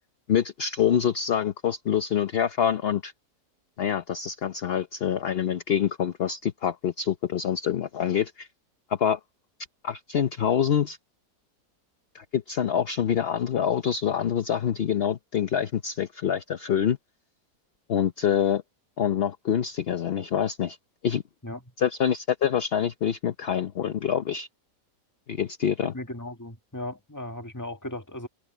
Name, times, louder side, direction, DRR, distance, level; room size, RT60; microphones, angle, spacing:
voice 1, 0.3-3.1 3.8-8.5 8.9-9.2 9.8-11.0 12.1-17.0 17.9-18.6 19.0-20.8 21.0-21.2 21.8-24.5 25.3-25.9, left 8 dB, 50° left, 0.7 m, -26 dB
voice 2, 25.9-28.3, left 1 dB, 10° left, 1.6 m, -36 dB
omnidirectional pair, 1.8 m